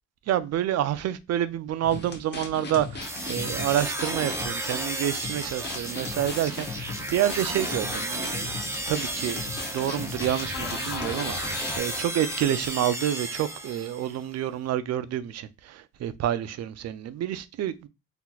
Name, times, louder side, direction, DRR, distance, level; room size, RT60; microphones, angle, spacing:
voice 1, 0.3-8.5 8.9-9.4 9.7-17.9, right 11 dB, 60° right, 0.4 m, -28 dB
sound 1, 1.8-4.5 4.8-4.9 5.2-11.8, left 3 dB, 35° left, 0.9 m, -37 dB
sound 2, 3.0-14.2, right 1 dB, 10° right, 0.5 m, -33 dB
sound 3, 10.5-12.9, left 9 dB, 55° left, 0.5 m, -40 dB
3.9 x 2.8 x 2.3 m
cardioid pair, 90°, 30 cm